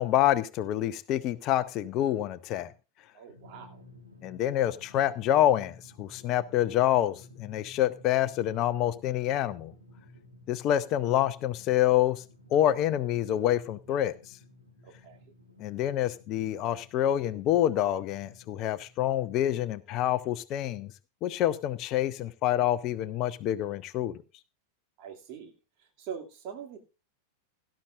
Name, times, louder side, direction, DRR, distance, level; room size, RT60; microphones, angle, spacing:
voice 1, 0.0-2.7 4.2-9.7 10.5-12.2 12.5-14.4 15.6-20.9 21.2-24.1, left 12 dB, 35° left, 0.6 m, -27 dB
voice 2, 3.1-3.8 14.8-15.2 25.0-25.5 25.8-26.8, right 7 dB, 40° right, 2.5 m, -43 dB
Drum, 3.3-19.5, left 2 dB, 85° right, 2.5 m, -54 dB
17.0 x 11.5 x 2.5 m
figure-of-eight pair, 90°, 0 cm